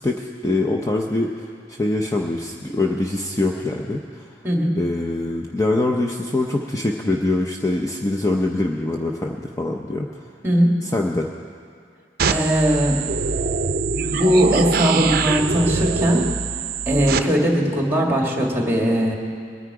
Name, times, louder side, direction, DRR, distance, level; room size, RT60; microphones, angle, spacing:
voice 1, 0.0-4.4 4.8-10.1 10.8-11.3, left 2 dB, 20° left, 1 dB, 0.6 m, -24 dB
voice 2, 4.4-4.8 10.4-10.8 12.3-13.0 14.1-16.2 16.9-19.1, equal, 15° right, 0 dB, 1.9 m, -19 dB
sound 1, 12.2-17.2, right 5 dB, 55° right, 0.5 m, -23 dB
21.5 x 9.8 x 4.8 m, 2.2 s
head